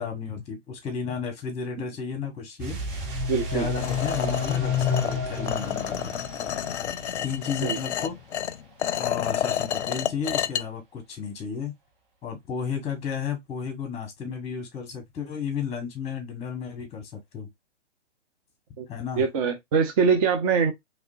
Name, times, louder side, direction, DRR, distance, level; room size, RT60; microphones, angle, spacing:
voice 1, 0.0-2.8 3.5-6.1 7.2-8.1 9.0-11.7 12.2-17.5 18.9-19.3, left 6 dB, 15° left, 1.6 m, -33 dB
sound 1, 2.6-9.1 9.4-9.5, right 2 dB, 45° right, 1.4 m, -38 dB
sound 2, 2.7-6.7, left 7 dB, 10° right, 1.6 m, -30 dB
voice 2, 3.3-3.7 7.6-7.8 18.8-18.9 19.2-20.7, right 6 dB, 30° right, 0.6 m, -23 dB
sound 3, 3.8-10.6, left 10 dB, 65° left, 0.5 m, -30 dB
3.6 x 3.2 x 2.6 m
figure-of-eight pair, 125°, 36 cm